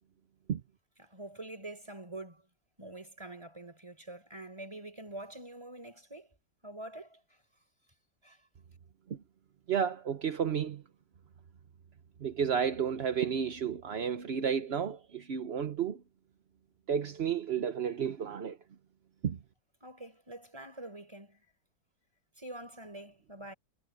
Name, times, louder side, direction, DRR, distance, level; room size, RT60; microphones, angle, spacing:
voice 1, 1.0-2.5 2.8-6.3 6.6-7.2 8.2-8.4 19.8-21.4 22.4-23.5, right 1 dB, 15° right, 4.5 m, -45 dB
voice 2, 9.7-10.8 12.2-16.0 16.9-18.6 19.2-19.4, right 7 dB, 45° right, 0.9 m, -32 dB
omnidirectional pair, 1.9 m